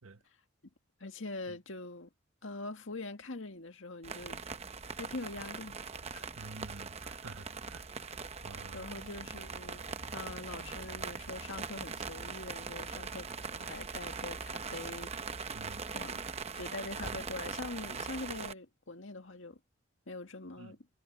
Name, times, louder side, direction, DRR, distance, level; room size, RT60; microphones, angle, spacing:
voice 1, 1.0-2.1 2.4-4.4 4.9-6.3 8.4-9.8 10.1-13.3 13.6-15.1 15.9-16.2 16.5-19.6 20.1-20.8, left 2 dB, 70° left, 2.0 m, -43 dB
sound 1, 4.0-18.5, right 5 dB, 30° right, 0.8 m, -41 dB
voice 2, 6.4-9.1 15.5-15.9 20.6-20.8, right 3 dB, 85° right, 1.2 m, -50 dB
head